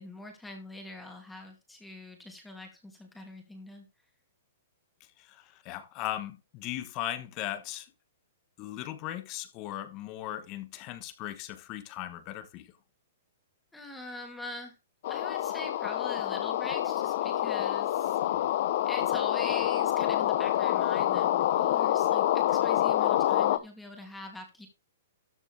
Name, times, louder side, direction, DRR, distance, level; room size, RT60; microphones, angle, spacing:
voice 1, 0.0-3.9 13.7-14.8 15.1-18.5 18.9-24.7, left 1 dB, 5° left, 2.5 m, -44 dB
voice 2, 5.2-7.9 8.6-12.7, left 13 dB, 25° left, 1.2 m, -38 dB
sound 1, 15.0-23.6, left 12 dB, 40° left, 0.8 m, -27 dB
13.5 x 6.9 x 3.4 m
hypercardioid pair, 175°, 0 cm